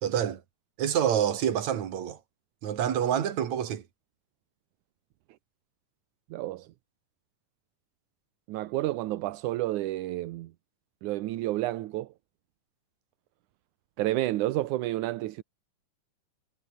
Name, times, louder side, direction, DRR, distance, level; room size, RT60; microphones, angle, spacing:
voice 1, 0.0-0.4 0.8-2.2 2.6-3.8, right 9 dB, 60° right, 3.2 m, -27 dB
voice 2, 6.3-6.7 8.5-10.5 11.0-12.1 14.0-15.4, right 16 dB, 75° right, 2.2 m, -30 dB
omnidirectional pair, 3.7 m